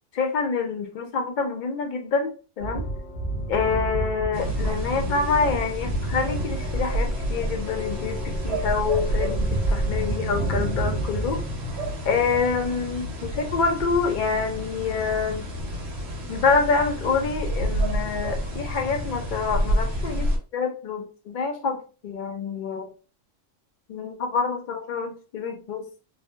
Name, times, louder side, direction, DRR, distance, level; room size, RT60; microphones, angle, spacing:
voice 1, 0.1-2.9 3.5-11.4 12.0-15.4 16.3-22.9 23.9-25.8, left 5 dB, 65° left, 4 dB, 0.4 m, -26 dB
sound 1, 2.6-11.5, right 2 dB, 85° left, 1.2 m, -30 dB
sound 2, 4.3-20.4, equal, 60° right, 0.9 m, -29 dB
3.1 x 2.0 x 2.3 m, 0.35 s
omnidirectional pair, 1.3 m